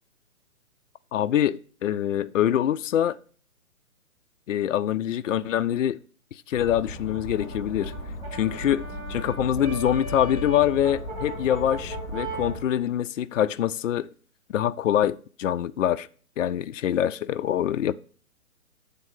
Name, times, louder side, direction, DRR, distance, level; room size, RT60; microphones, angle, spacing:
voice 1, 1.1-3.2 4.5-6.0 6.5-7.9 8.3-8.8 9.1-14.1 14.5-16.1 16.4-17.9, left 10 dB, 60° left, 0.5 m, -24 dB
sound 1, 6.5-12.6, equal, 10° left, 0.6 m, -36 dB
Brass instrument, 7.1-12.6, right 2 dB, 30° right, 3.3 m, -38 dB
8.8 x 3.7 x 5.5 m
figure-of-eight pair, 135°, 44 cm